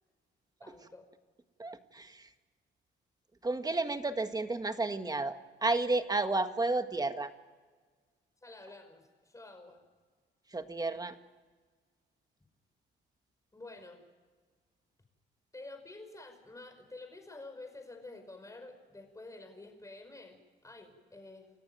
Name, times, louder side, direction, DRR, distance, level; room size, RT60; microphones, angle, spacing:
voice 1, 0.6-1.1 8.4-9.8 13.5-14.0 15.5-21.5, left 2 dB, 15° left, 6 dB, 5.2 m, -49 dB
voice 2, 1.6-2.2 3.4-7.3 10.5-11.2, right 2 dB, 20° right, 8 dB, 1.7 m, -32 dB
29.5 x 14.0 x 9.3 m, 1.5 s
cardioid pair, 90°, 20 cm